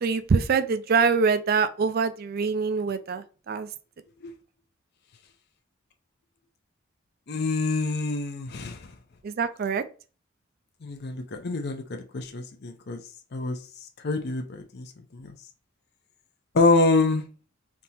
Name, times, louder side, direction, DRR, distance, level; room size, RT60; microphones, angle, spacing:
voice 1, 0.0-3.7 9.2-9.8, right 5 dB, 50° right, 0.4 m, -24 dB
voice 2, 7.3-8.9 10.8-13.0 13.3-13.6 14.0-15.3 16.5-17.2, left 3 dB, 55° left, 0.6 m, -26 dB
3.5 x 2.8 x 4.1 m
head